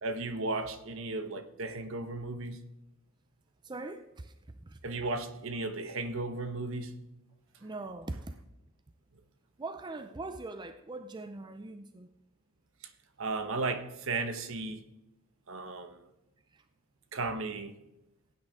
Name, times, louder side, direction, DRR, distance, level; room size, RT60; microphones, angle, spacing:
voice 1, 0.0-2.6 4.8-7.0 13.2-14.8 15.5-16.0 17.1-17.7, right 3 dB, 65° right, 9 dB, 1.1 m, -35 dB
voice 2, 3.6-4.3 4.6-4.8 7.6-8.4 9.6-12.1 16.5-16.7, right 2 dB, 20° right, 9 dB, 0.5 m, -41 dB
15.5 x 8.9 x 3.6 m, 0.93 s
head